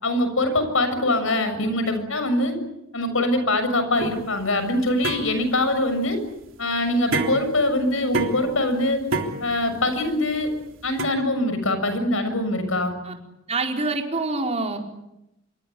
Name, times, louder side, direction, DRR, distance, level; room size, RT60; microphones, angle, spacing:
voice 1, 0.0-2.6 2.9-6.2 6.6-9.1 9.4-10.5 10.8-12.9, left 1 dB, 70° left, 9 dB, 6.9 m, -23 dB
sound 1, 4.0-11.0, right 2 dB, 65° right, 3.5 m, -31 dB
voice 2, 13.5-14.8, right 3 dB, 30° right, 2 dB, 4.8 m, -26 dB
27.0 x 24.0 x 8.6 m, 0.89 s
head